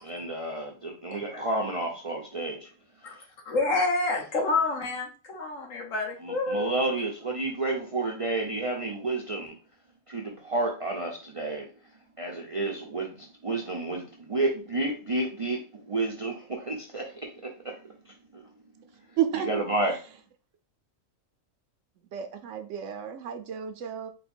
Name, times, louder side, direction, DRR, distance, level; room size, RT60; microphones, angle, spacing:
voice 1, 0.0-2.7 3.0-3.2 6.2-9.5 10.1-11.7 12.2-17.8 18.1-18.4 19.4-20.0, right 2 dB, 40° right, 0.5 m, -31 dB
voice 2, 3.4-6.7, left 3 dB, 75° left, 1.5 m, -28 dB
voice 3, 19.2-19.5 22.1-24.1, right 9 dB, 70° right, 0.9 m, -31 dB
4.3 x 2.3 x 4.3 m
omnidirectional pair, 1.4 m